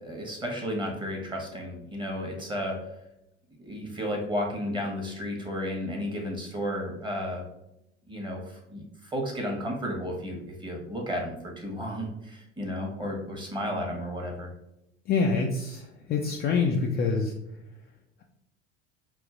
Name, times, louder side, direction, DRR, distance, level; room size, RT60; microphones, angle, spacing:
voice 1, 0.0-2.8 3.6-7.5 8.1-14.5, equal, 15° right, 1 dB, 1.3 m, -33 dB
voice 2, 15.1-17.3, left 4 dB, 30° left, 1 dB, 0.5 m, -26 dB
5.2 x 2.7 x 3.7 m, 0.84 s
figure-of-eight pair, 75°, 36 cm